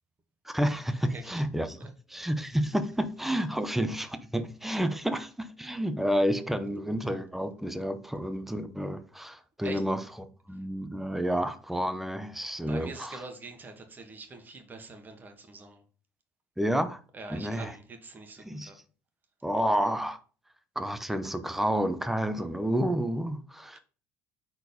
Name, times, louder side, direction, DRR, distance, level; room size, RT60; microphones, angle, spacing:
voice 1, 0.4-1.8 2.1-10.0 10.5-13.2 16.6-17.0 17.3-17.7 18.4-18.7 19.4-20.2 20.8-23.8, equal, 5° right, 0.8 m, -30 dB
voice 2, 1.1-1.4 1.8-1.9 9.6-9.8 10.5-10.8 12.7-15.8 17.1-18.8 23.7-23.8, right 3 dB, 30° right, 1.7 m, -44 dB
4.6 x 3.9 x 5.2 m
supercardioid pair, 75°, 6 cm